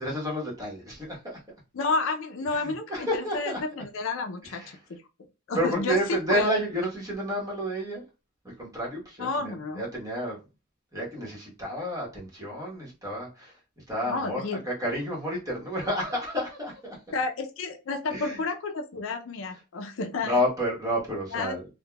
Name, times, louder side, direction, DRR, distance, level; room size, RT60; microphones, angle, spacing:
voice 1, 0.0-1.4 2.5-3.6 4.4-4.8 5.5-8.0 8.4-10.4 10.9-17.0 18.1-18.4 20.2-21.7, equal, 15° right, -4 dB, 1.1 m, -30 dB
voice 2, 1.7-4.8 5.5-6.0 6.3-6.5 9.2-9.9 14.1-14.6 17.1-20.4 21.3-21.6, left 3 dB, 65° left, 6 dB, 0.4 m, -30 dB
3.4 x 2.1 x 2.2 m, 0.29 s
head